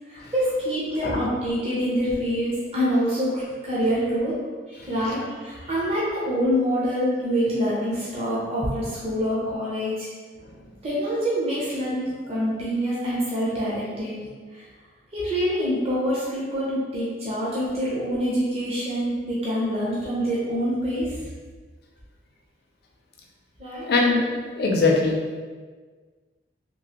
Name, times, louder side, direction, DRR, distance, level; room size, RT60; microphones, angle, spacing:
voice 1, 0.1-4.4 4.7-10.1 10.8-14.2 14.5-14.6 15.1-21.2 23.6-23.9, equal, 30° right, -8 dB, 0.6 m, -26 dB
voice 2, 23.9-25.2, left 3 dB, 55° left, -1 dB, 0.5 m, -21 dB
3.0 x 2.4 x 2.9 m, 1.5 s
head